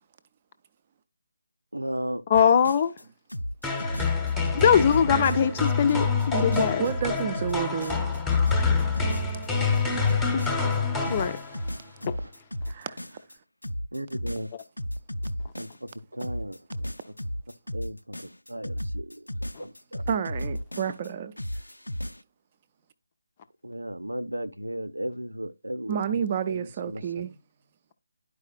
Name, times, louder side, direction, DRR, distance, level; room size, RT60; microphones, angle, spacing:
voice 1, 1.7-2.2 3.8-4.1 12.0-12.3 13.9-14.5 15.6-16.9 17.7-19.3 19.6-20.0 23.6-26.0 26.4-27.0, right 1 dB, 80° right, 0.6 m, -35 dB
sound 1, 2.3-3.0 3.3-5.6 5.9-10.8 11.0-13.4 13.6-15.9 16.2-21.1 21.4-22.2, equal, 80° left, 0.4 m, -34 dB
voice 2, 2.3-2.9 4.5-6.9 11.1-11.4 12.0-12.1 19.5-19.6, left 8 dB, 25° left, 0.5 m, -21 dB
sound 2, 3.6-11.8, left 4 dB, 5° left, 1.0 m, -27 dB
voice 3, 6.3-8.0 12.7-13.0 20.1-21.3 25.9-27.3, right 8 dB, 30° right, 0.6 m, -30 dB
11.0 x 4.9 x 2.3 m
figure-of-eight pair, 150°, 0 cm